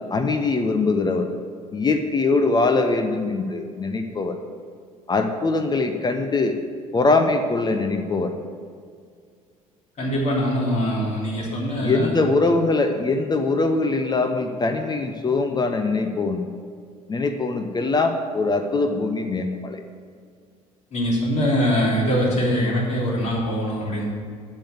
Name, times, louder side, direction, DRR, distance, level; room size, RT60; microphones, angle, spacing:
voice 1, 0.1-1.3 1.7-4.3 5.1-6.6 6.9-8.4 11.8-16.5 17.1-19.8, left 3 dB, 25° left, 6 dB, 0.8 m, -22 dB
voice 2, 10.0-12.1 20.9-24.1, equal, 40° left, -4 dB, 3.0 m, -23 dB
7.4 x 6.8 x 7.6 m, 2.1 s
figure-of-eight pair, 55°, 18 cm